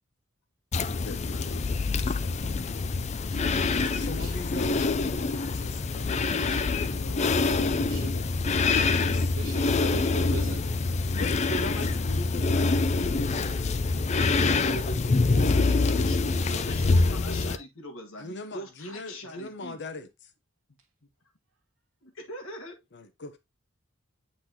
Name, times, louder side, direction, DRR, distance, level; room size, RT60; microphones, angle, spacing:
sound 1, 0.7-17.6, left 3 dB, 35° left, 0.4 m, -25 dB
voice 1, 1.0-1.5 1.9-2.3 3.8-6.1 7.0-7.4 9.0-9.4 11.2-13.6 18.2-20.3 22.9-23.4, left 2 dB, 60° left, 1.0 m, -41 dB
voice 2, 3.8-5.8 6.5-8.4 9.4-10.8, right 3 dB, 70° right, 1.0 m, -43 dB
voice 3, 14.2-19.8 22.0-22.8, equal, 85° left, 1.5 m, -41 dB
8.2 x 4.2 x 2.8 m
head